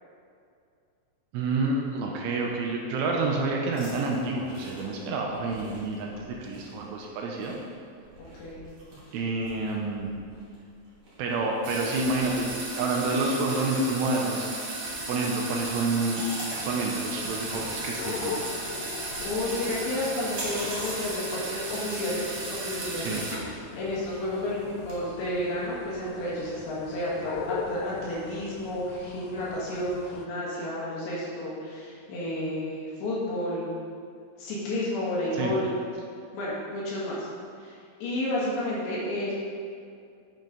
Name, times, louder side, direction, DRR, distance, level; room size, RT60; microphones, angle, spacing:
voice 1, 1.3-7.6 9.1-10.1 11.2-14.5 15.1-18.4 23.0-23.3 35.3-35.5, right 3 dB, 85° right, -1 dB, 3.1 m, -28 dB
sound 1, 3.7-21.1, right 1 dB, 40° right, 2.6 m, -46 dB
sound 2, 11.6-23.5 23.9-24.9, right 2 dB, 60° right, 2.2 m, -35 dB
sound 3, 17.3-30.3, left 6 dB, 85° left, 3.0 m, -40 dB
voice 2, 19.2-33.7 34.4-35.8 36.3-37.3 37.6-39.3, left 1 dB, 65° left, -7 dB, 3.6 m, -31 dB
9.3 x 7.2 x 4.0 m, 2.3 s
omnidirectional pair, 5.9 m